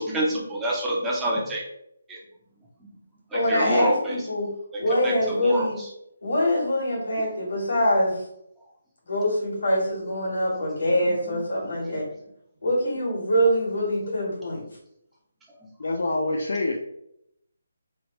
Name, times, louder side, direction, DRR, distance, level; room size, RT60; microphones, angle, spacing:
voice 1, 0.0-1.6 2.1-2.2 3.3-4.2 5.0-5.7, right 1 dB, 5° right, -5 dB, 0.4 m, -26 dB
voice 2, 3.3-4.5 4.8-5.8 6.2-8.2 9.1-12.1 12.6-14.6, equal, 85° left, -4 dB, 1.3 m, -24 dB
voice 3, 15.8-16.8, left 2 dB, 70° left, 0 dB, 0.4 m, -26 dB
3.0 x 2.1 x 3.0 m, 0.77 s
hypercardioid pair, 175°, 0 cm